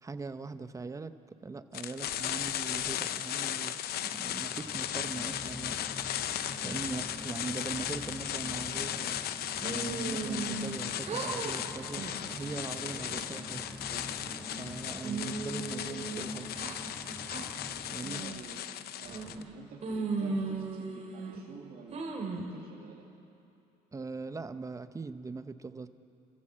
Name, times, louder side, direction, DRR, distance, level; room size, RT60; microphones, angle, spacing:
voice 1, 0.0-1.1 1.4-5.8 6.6-9.2 9.6-13.7 14.6-16.5 17.9-18.2 23.9-25.9, right 4 dB, 20° right, 11 dB, 0.9 m, -41 dB
sound 1, 1.7-19.4, left 11 dB, 65° left, 0.7 m, -36 dB
sound 2, 4.0-18.5, equal, 5° left, 5.1 m, -46 dB
sound 3, 9.6-10.8 11.0-11.6 12.0-12.3 12.8-13.4 13.9-14.6 15.0-16.8 17.3-17.5 18.0-18.5 19.0-19.5 19.8-21.4 21.9-22.5, right 3 dB, 40° right, 3.3 m, -37 dB
voice 2, 18.0-18.6 19.0-23.1, right 6 dB, 60° right, -3 dB, 2.6 m, -50 dB
29.0 x 15.0 x 7.7 m, 2.7 s
cardioid pair, 110°, 17 cm